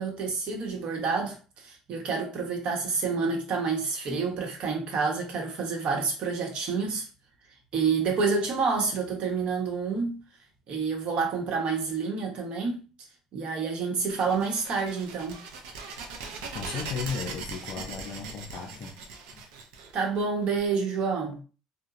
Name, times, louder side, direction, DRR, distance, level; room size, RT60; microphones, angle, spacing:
voice 1, 0.0-7.0 7.7-10.2 10.7-12.8 13.3-15.4 19.9-21.4, right 5 dB, 60° right, 0.9 m, -28 dB
sound 1, 14.1-20.6, right 4 dB, 80° right, 0.5 m, -40 dB
voice 2, 16.5-19.0 19.3-19.4, left 6 dB, 60° left, 0.4 m, -35 dB
2.9 x 2.1 x 2.4 m
supercardioid pair, 75°, 2 cm